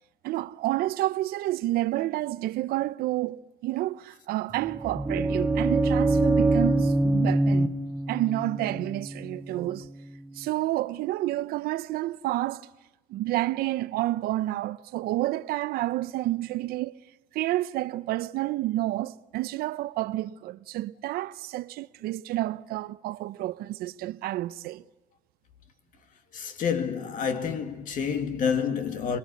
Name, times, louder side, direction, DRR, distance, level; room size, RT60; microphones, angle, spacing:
voice 1, 0.2-7.8 8.1-9.9 10.3-12.7 13.1-17.0 17.3-24.8, right 16 dB, 75° right, 0.8 m, -29 dB
sound 1, 4.5-10.4, right 2 dB, 15° right, 0.9 m, -25 dB
voice 2, 26.3-29.2, left 7 dB, 55° left, 2.4 m, -28 dB
26.5 x 22.0 x 8.3 m
cardioid pair, 140°, 16 cm